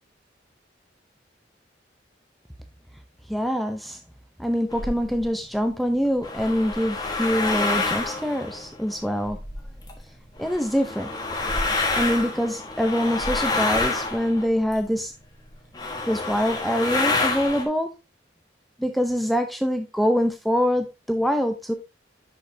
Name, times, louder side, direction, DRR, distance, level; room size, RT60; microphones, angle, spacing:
voice 1, 3.3-4.0 4.4-9.4 10.4-11.1 11.9-15.1 16.1-17.9 18.8-21.7, equal, ahead, 0.6 m, -24 dB
sound 1, 4.7-5.2 6.0-10.0 10.4-15.0 15.5-15.6 15.7-17.6, left 3 dB, 20° left, 1.3 m, -28 dB
10.5 x 5.2 x 2.7 m
head